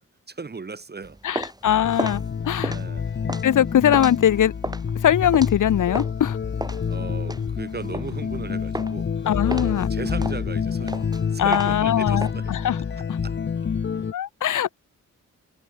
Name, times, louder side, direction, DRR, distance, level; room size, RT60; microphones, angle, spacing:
voice 1, 0.3-1.2 2.6-3.1 6.9-9.1 9.4-11.0 11.3-12.4 13.2-13.4, right 4 dB, 30° right, 2.1 m, -36 dB
sound 1, 1.0-6.2 6.6-8.4 8.7-9.1 9.5-12.3, right 1 dB, 10° right, 3.1 m, -33 dB
voice 2, 1.2-2.7 3.4-4.5 5.0-6.4 9.3-9.9 11.4-12.8 13.1-13.2 14.1-14.7, left 10 dB, 75° left, 1.3 m, -21 dB
sound 2, 1.7-14.1, left 6 dB, 35° left, 0.8 m, -28 dB
cardioid pair, 85°, 31 cm